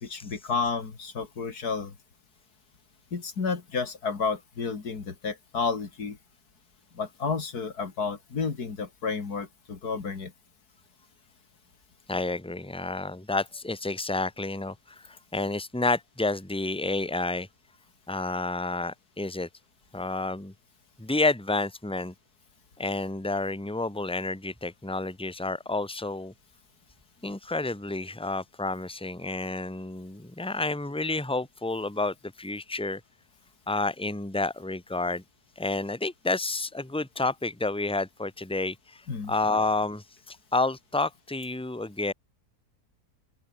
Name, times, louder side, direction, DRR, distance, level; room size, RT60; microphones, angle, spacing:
voice 1, 0.0-1.9 3.1-6.2 7.0-10.3 39.1-39.3, left 5 dB, 85° left, 3.0 m, -31 dB
voice 2, 12.1-17.5 18.1-19.5 19.9-20.5 21.0-22.1 22.8-26.3 27.2-33.0 33.7-35.2 35.6-39.0 39.3-42.1, left 2 dB, 5° left, 1.9 m, -30 dB
open air
omnidirectional pair, 1.6 m